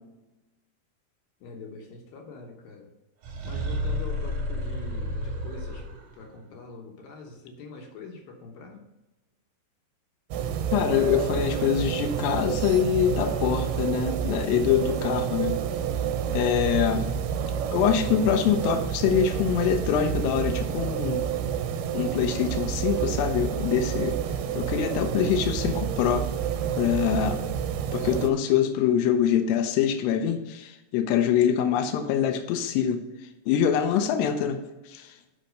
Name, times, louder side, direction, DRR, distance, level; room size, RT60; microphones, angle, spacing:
voice 1, 1.4-2.9 3.4-5.9 6.1-8.8, left 3 dB, 70° left, 2 dB, 2.5 m, -44 dB
sound 1, 3.2-6.3, equal, 65° right, 2.2 m, -31 dB
sound 2, 10.3-28.3, right 8 dB, 85° right, 2.5 m, -29 dB
voice 2, 10.7-15.6 16.3-17.1 17.7-21.3 21.9-24.2 24.5-26.3 26.8-27.4 27.9-33.0 33.5-35.1, left 9 dB, 85° left, 7 dB, 2.8 m, -24 dB
8.2 x 5.6 x 5.2 m, 1.0 s
omnidirectional pair, 4.8 m